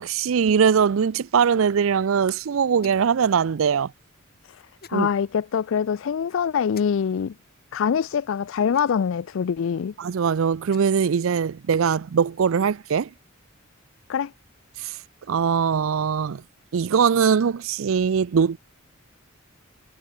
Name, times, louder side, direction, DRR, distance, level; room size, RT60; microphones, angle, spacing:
voice 1, 0.0-3.9 4.9-5.1 10.0-13.1 14.8-14.9 15.3-16.4 16.7-18.6, right 6 dB, 70° right, 0.4 m, -21 dB
sound 1, 2.8-3.2 4.8-5.0 6.7-6.9 8.7-9.2 10.5-11.0, left 7 dB, 50° left, 1.2 m, -49 dB
voice 2, 4.9-7.3 7.7-9.9 14.1-14.3, left 7 dB, 65° left, 0.4 m, -24 dB
head